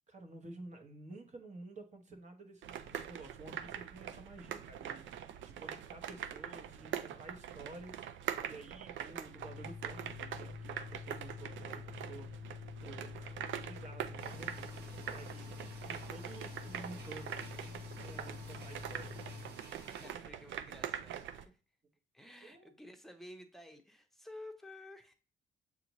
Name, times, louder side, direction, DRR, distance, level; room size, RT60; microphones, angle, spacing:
voice 1, 0.1-12.3 12.8-19.4 22.4-22.7, right 2 dB, 35° right, 4 dB, 1.0 m, -52 dB
sound 1, 2.6-21.5, right 9 dB, 75° right, 0.5 m, -44 dB
Organ, 9.3-19.6, left 6 dB, 70° left, 0.6 m, -48 dB
sound 2, 14.2-20.1, right 2 dB, 55° right, 1.2 m, -54 dB
voice 2, 19.8-21.6 22.1-25.1, left 1 dB, ahead, 5 dB, 0.7 m, -53 dB
7.1 x 2.5 x 3.0 m, 0.35 s
cardioid pair, 90°, 20 cm